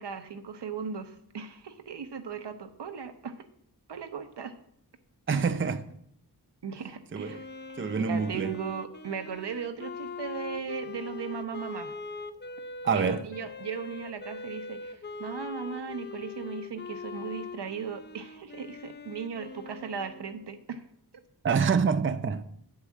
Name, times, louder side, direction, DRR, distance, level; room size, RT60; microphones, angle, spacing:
voice 1, 0.0-3.3 3.9-4.5 5.3-5.5 6.6-7.5 8.0-11.9 12.9-20.8, right 6 dB, 75° right, 1.0 m, -37 dB
voice 2, 5.3-5.8 7.1-7.4 7.8-8.5 12.8-13.2 21.4-22.4, right 5 dB, 30° right, 0.6 m, -26 dB
Wind instrument woodwind instrument, 7.2-20.6, left 4 dB, 25° left, 0.6 m, -42 dB
9.5 x 4.8 x 7.3 m
wide cardioid pair, 85°, 41 cm